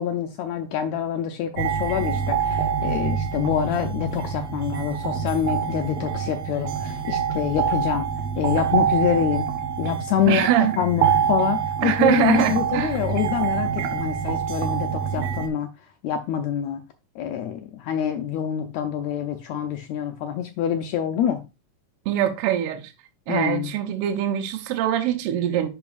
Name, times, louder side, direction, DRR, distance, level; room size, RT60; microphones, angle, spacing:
voice 1, 0.0-8.1 8.4-9.5 9.8-10.5 10.8-15.7 16.0-16.8 17.1-21.4 23.3-23.7, left 9 dB, 85° left, 1.6 m, -26 dB
sound 1, 1.6-15.5, right 7 dB, 70° right, 1.7 m, -26 dB
voice 2, 10.3-10.7 11.8-13.0 22.0-22.8 23.3-25.7, right 11 dB, 90° right, 1.3 m, -23 dB
12.0 x 4.2 x 2.4 m
omnidirectional pair, 3.8 m